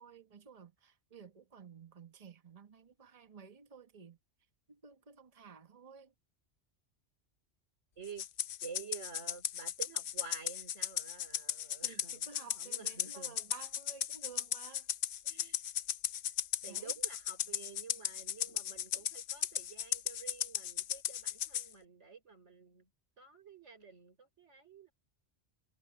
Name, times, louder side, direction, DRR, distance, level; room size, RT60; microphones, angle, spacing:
voice 1, 0.0-4.2 4.7-6.1 11.8-14.9 16.7-16.9, right 6 dB, 35° right, 1.4 m, -54 dB
voice 2, 8.0-8.3 8.6-13.4 15.2-15.6 16.6-22.9 23.2-24.9, right 5 dB, 90° right, 4.1 m, -50 dB
Rattle (instrument), 8.2-21.7, left 10 dB, 60° left, 0.7 m, -36 dB
omnidirectional pair, 1.2 m